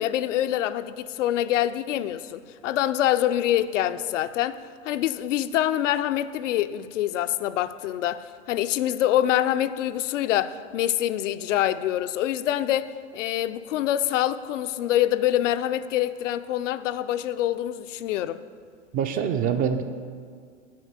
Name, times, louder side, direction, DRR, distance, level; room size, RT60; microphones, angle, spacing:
voice 1, 0.0-4.6 4.8-12.9 13.1-18.4, left 12 dB, 75° left, 0.5 m, -25 dB
voice 2, 18.9-19.8, right 7 dB, 25° right, 0.4 m, -24 dB
8.6 x 4.6 x 7.3 m
hypercardioid pair, 110°, 38 cm